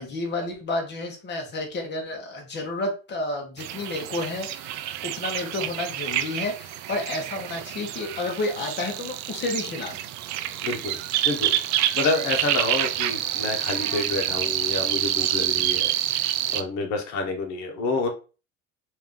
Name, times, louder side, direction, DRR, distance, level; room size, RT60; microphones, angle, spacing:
voice 1, 0.0-10.0, left 2 dB, 35° left, 2 dB, 1.3 m, -31 dB
sound 1, 3.6-16.6, right 12 dB, 65° right, 0.5 m, -27 dB
voice 2, 10.6-11.0 11.2-18.1, left 3 dB, 65° left, 4 dB, 1.2 m, -29 dB
3.3 x 2.8 x 3.7 m, 0.33 s
cardioid pair, 125°, 30 cm